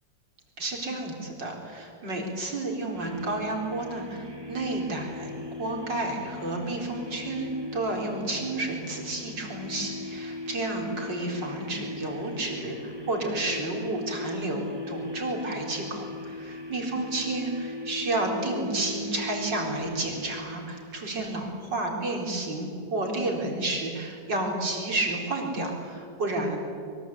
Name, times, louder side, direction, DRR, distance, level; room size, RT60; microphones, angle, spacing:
voice 1, 0.6-5.3 5.6-26.6, right 2 dB, 70° right, 1 dB, 4.9 m, -31 dB
sound 1, 2.9-21.2, left 2 dB, 10° right, 2.8 m, -39 dB
25.0 x 23.0 x 8.4 m, 2.4 s
omnidirectional pair, 2.0 m